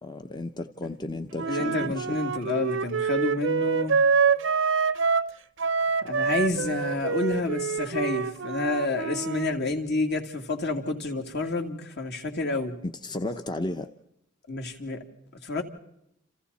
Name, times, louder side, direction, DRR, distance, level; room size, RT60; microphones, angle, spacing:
voice 1, 0.0-2.2 12.8-13.9, left 2 dB, 20° left, 0.9 m, -34 dB
Wind instrument woodwind instrument, 1.3-5.3 5.6-9.5, right 5 dB, 70° right, 0.8 m, -26 dB
voice 2, 1.5-4.0 6.0-12.7 14.5-15.0 15.4-15.6, left 2 dB, 55° left, 3.1 m, -29 dB
30.0 x 28.0 x 4.2 m
head